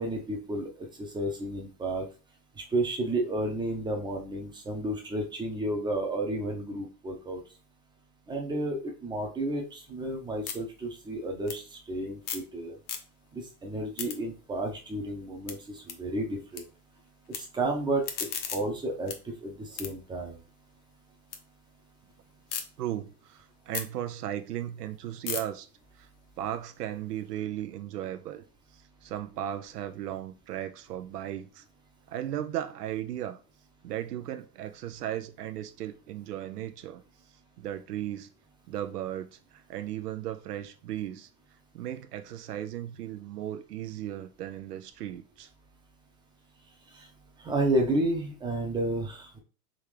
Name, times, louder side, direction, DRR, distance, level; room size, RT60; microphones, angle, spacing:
voice 1, 0.0-2.1 2.6-7.4 8.3-12.8 13.3-16.6 17.3-20.4 46.9-47.1 47.4-49.4, right 1 dB, 10° right, 0.7 m, -32 dB
sound 1, 9.6-12.5 12.8-13.4 13.7-16.6 16.9-17.4 17.8-21.4 21.8-22.6 23.1-27.2, left 8 dB, 40° left, 0.8 m, -41 dB
voice 2, 22.8-25.7 26.0-26.1 26.4-28.4 28.7-31.6 32.1-33.4 33.8-37.0 37.6-38.3 38.7-41.3 41.7-45.5, right 12 dB, 80° right, 0.6 m, -36 dB
3.7 x 3.3 x 3.2 m
hypercardioid pair, 125°, 46 cm